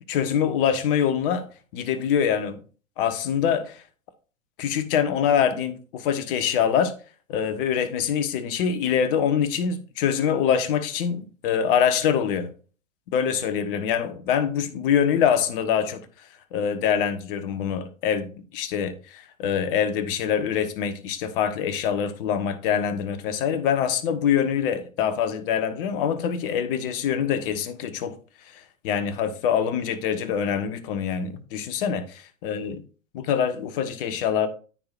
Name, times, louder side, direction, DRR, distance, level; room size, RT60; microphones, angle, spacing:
voice 1, 0.1-1.4 1.7-2.6 3.0-3.8 4.6-6.9 7.3-12.5 13.1-16.0 16.5-28.1 28.5-32.0 32.4-32.8 33.1-34.5, left 8 dB, 40° left, 1.1 m, -24 dB
14.0 x 4.8 x 2.5 m
figure-of-eight pair, 100°, 40 cm